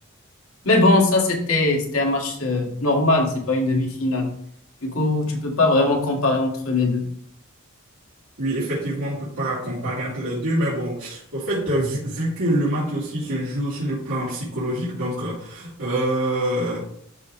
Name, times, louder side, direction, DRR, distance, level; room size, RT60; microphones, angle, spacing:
voice 1, 0.7-4.3 4.8-7.1, left 2 dB, 75° left, 1 dB, 2.0 m, -20 dB
voice 2, 8.4-16.8, right 1 dB, 80° right, -11 dB, 3.1 m, -25 dB
12.5 x 4.8 x 3.2 m, 0.65 s
head